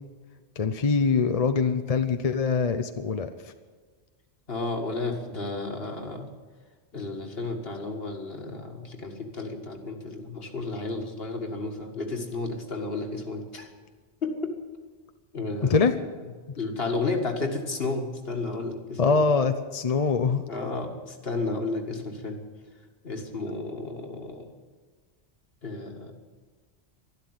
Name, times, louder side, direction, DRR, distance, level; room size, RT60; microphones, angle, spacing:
voice 1, 0.6-3.5 15.7-15.9 16.5-16.6 19.0-20.4, left 5 dB, 40° left, 9 dB, 0.7 m, -24 dB
voice 2, 4.5-6.3 6.9-13.7 14.2-14.5 15.3-15.8 16.6-19.3 20.5-22.4 23.0-24.5 25.6-26.1, left 3 dB, 60° left, 3 dB, 2.2 m, -32 dB
12.5 x 12.0 x 9.6 m, 1.5 s
omnidirectional pair, 1.1 m